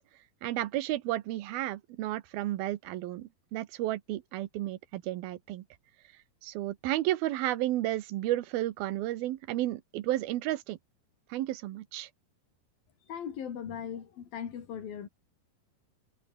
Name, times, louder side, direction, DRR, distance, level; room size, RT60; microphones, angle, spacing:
voice 1, 0.4-5.6 6.4-10.8 11.3-12.1, right 15 dB, 85° right, 3.0 m, -32 dB
voice 2, 13.1-15.1, left 8 dB, 75° left, 4.6 m, -38 dB
omnidirectional pair, 4.2 m